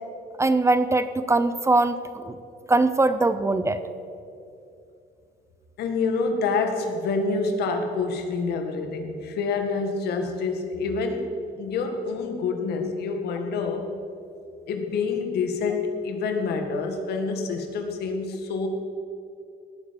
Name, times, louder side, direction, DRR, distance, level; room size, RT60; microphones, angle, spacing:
voice 1, 0.4-2.4 2.7-3.8, right 2 dB, 15° right, 11 dB, 0.6 m, -21 dB
voice 2, 5.8-11.3 11.6-13.9 14.7-18.7, left 4 dB, 70° left, 5 dB, 1.8 m, -27 dB
17.5 x 8.7 x 5.3 m, 2.6 s
cardioid pair, 110°, 17 cm